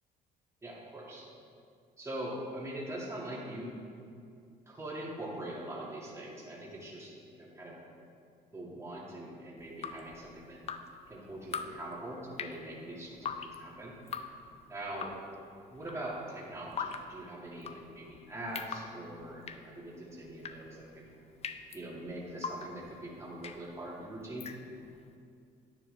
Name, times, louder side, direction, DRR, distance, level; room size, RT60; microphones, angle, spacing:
voice 1, 0.6-1.3 2.0-3.9 4.7-7.8 8.5-10.6 11.1-14.0 14.7-15.1 15.7-21.1 21.7-24.5, right 1 dB, 15° right, -5 dB, 2.0 m, -42 dB
Drip, 9.6-25.0, left 6 dB, 40° left, 0.5 m, -44 dB
10.0 x 9.4 x 3.3 m, 2.4 s
cardioid pair, 110°, 17 cm